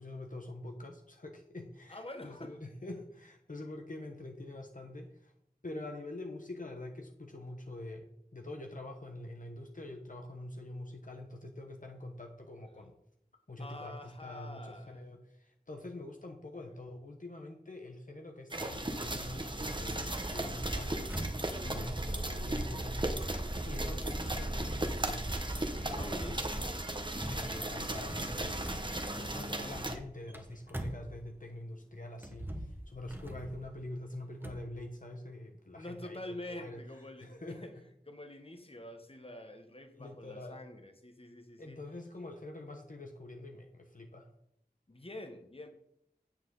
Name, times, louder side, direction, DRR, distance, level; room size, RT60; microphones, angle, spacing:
voice 1, 0.0-5.3 5.6-12.9 13.5-21.3 21.6-25.2 25.7-26.5 27.2-36.8 37.2-37.6 39.9-40.6 41.6-44.3, left 1 dB, 60° left, 3 dB, 1.0 m, -45 dB
voice 2, 1.9-2.6 13.6-15.0 16.6-16.7 21.5-21.9 25.9-26.8 29.3-29.6 35.7-37.7 38.1-41.8 44.9-45.7, left 1 dB, 35° left, 6 dB, 1.2 m, -46 dB
sound 1, 18.5-30.0, right 1 dB, 30° right, 1.0 m, -36 dB
sound 2, 21.1-31.6 32.1-34.7, right 1 dB, 15° right, 1.2 m, -46 dB
9.0 x 7.5 x 3.9 m, 0.73 s
wide cardioid pair, 50°, 16 cm